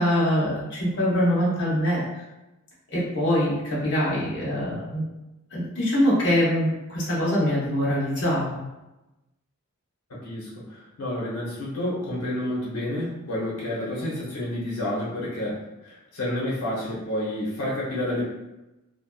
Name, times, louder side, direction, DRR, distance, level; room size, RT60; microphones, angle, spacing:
voice 1, 0.0-2.0 2.9-5.0 5.5-8.6, equal, 50° left, -8 dB, 0.8 m, -23 dB
voice 2, 10.1-18.2, left 1 dB, 80° left, -6 dB, 0.8 m, -30 dB
2.5 x 2.2 x 2.3 m, 0.99 s
head